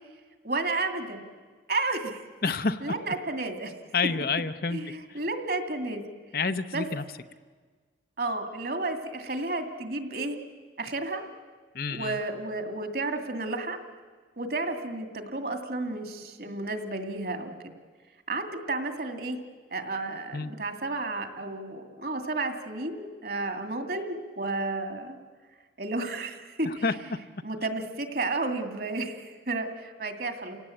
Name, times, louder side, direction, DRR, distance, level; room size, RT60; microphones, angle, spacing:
voice 1, 0.4-1.2 1.7-2.2 2.8-3.7 4.7-6.0 6.7-6.9 8.2-10.4 10.8-11.2 11.9-13.8 14.4-17.7 18.3-19.4 19.7-25.2 25.8-26.8 27.4-30.6, right 2 dB, 55° right, 6 dB, 2.4 m, -32 dB
voice 2, 2.4-2.8 3.9-4.8 5.1-5.2 6.3-7.0 11.7-12.2 20.3-20.5 26.6-26.9, left 4 dB, 50° left, 10 dB, 0.7 m, -28 dB
30.0 x 18.0 x 8.5 m, 1.5 s
head